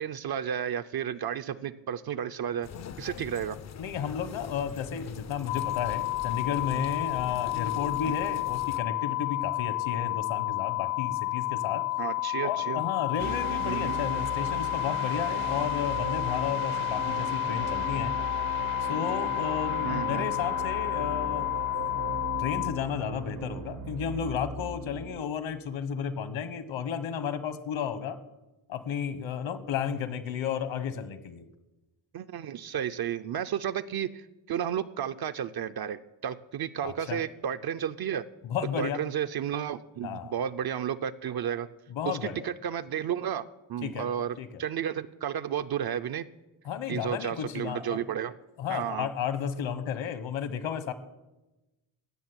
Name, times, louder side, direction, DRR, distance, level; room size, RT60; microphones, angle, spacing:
voice 1, 0.0-2.7 3.0-3.6 8.1-8.2 12.0-12.8 13.6-14.0 19.8-20.3 32.1-38.2 38.8-41.7 42.1-42.2 42.4-46.3 46.9-48.3 48.7-49.1, right 9 dB, 50° right, 10 dB, 0.5 m, -32 dB
sound 1, 2.6-8.8, left 8 dB, 35° left, 0.5 m, -43 dB
voice 2, 3.8-11.8 12.4-18.1 18.8-21.5 21.9-22.1 22.4-28.2 28.7-31.5 36.8-37.2 38.4-39.0 40.0-40.3 41.9-42.5 43.8-44.1 44.4-44.6 46.6-48.0 48.6-50.9, left 8 dB, 70° left, 12 dB, 1.4 m, -33 dB
sound 2, 5.5-22.7, left 20 dB, 90° left, 0.8 m, -31 dB
sound 3, 13.2-25.2, right 4 dB, 85° right, 1.4 m, -37 dB
16.5 x 6.7 x 9.6 m, 1.0 s
wide cardioid pair, 155°, 48 cm